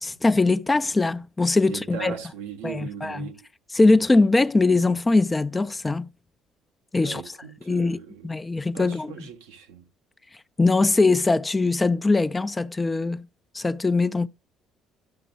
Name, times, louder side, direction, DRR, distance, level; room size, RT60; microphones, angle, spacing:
voice 1, 0.0-2.1 2.6-3.3 3.7-6.1 6.9-7.2 7.7-8.0 8.2-9.1 10.6-13.3 13.5-14.3, left 3 dB, 20° left, 0.5 m, -21 dB
voice 2, 1.6-3.4 7.0-8.3 8.7-9.9, right 7 dB, 85° right, 1.0 m, -38 dB
12.5 x 5.9 x 2.4 m
hypercardioid pair, 55°, 0 cm